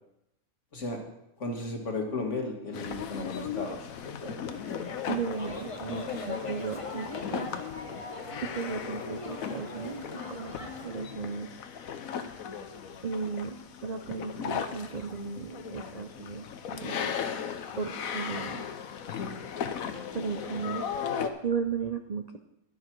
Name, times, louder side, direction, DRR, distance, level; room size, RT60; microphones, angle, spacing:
voice 1, 1.4-4.3, left 2 dB, 55° left, 3 dB, 2.0 m, -35 dB
sound 1, 2.7-21.3, left 7 dB, 70° left, 1.2 m, -37 dB
sound 2, 4.5-11.1, left 2 dB, 25° left, 1.0 m, -42 dB
voice 2, 5.1-7.5 8.4-11.6 13.0-13.6 13.8-17.1 17.8-18.6 20.1-20.8 21.4-22.4, right 5 dB, 75° right, 6 dB, 0.3 m, -35 dB
11.0 x 11.0 x 4.6 m, 0.85 s
omnidirectional pair, 1.6 m